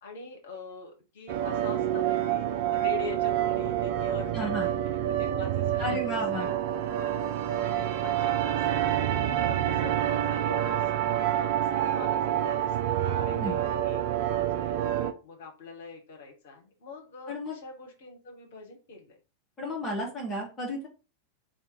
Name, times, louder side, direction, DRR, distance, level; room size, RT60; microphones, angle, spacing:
voice 1, 0.0-7.1 7.6-8.8 9.1-14.8 15.2-19.2, left 4 dB, 55° left, 2 dB, 1.4 m, -44 dB
sound 1, 1.3-15.1, right 11 dB, 50° right, 0.5 m, -27 dB
voice 2, 4.3-4.7 5.8-6.5 13.4-13.6 17.3-17.5 19.6-20.9, equal, 20° left, -2 dB, 1.4 m, -32 dB
3.3 x 2.7 x 4.4 m, 0.32 s
figure-of-eight pair, 90°, 0 cm